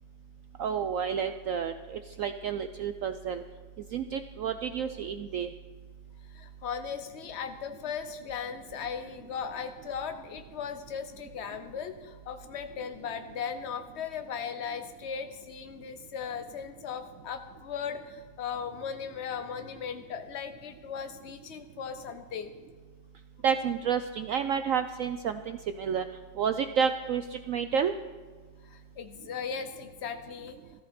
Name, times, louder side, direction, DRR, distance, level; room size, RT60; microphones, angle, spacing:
voice 1, 0.6-3.4 3.9-5.5 23.4-26.0 26.4-27.2 27.5-27.9, right 7 dB, 80° right, 9 dB, 0.7 m, -30 dB
voice 2, 6.3-22.5 28.6-30.6, left 7 dB, 70° left, 8 dB, 0.6 m, -37 dB
17.5 x 14.0 x 4.3 m, 1.5 s
omnidirectional pair, 2.0 m